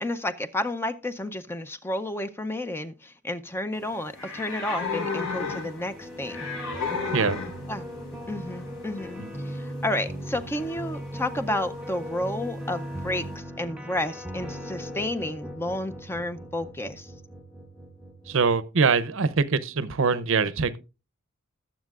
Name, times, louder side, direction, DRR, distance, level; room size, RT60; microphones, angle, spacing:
voice 1, 0.0-6.5 7.7-7.9 8.3-17.1, left 1 dB, 10° left, 0.5 m, -31 dB
sound 1, 3.7-13.4, left 4 dB, 65° left, 7.6 m, -36 dB
sound 2, 5.2-18.6, equal, 5° right, 0.9 m, -38 dB
voice 2, 18.3-20.7, right 5 dB, 65° right, 0.7 m, -23 dB
20.0 x 7.3 x 2.4 m
head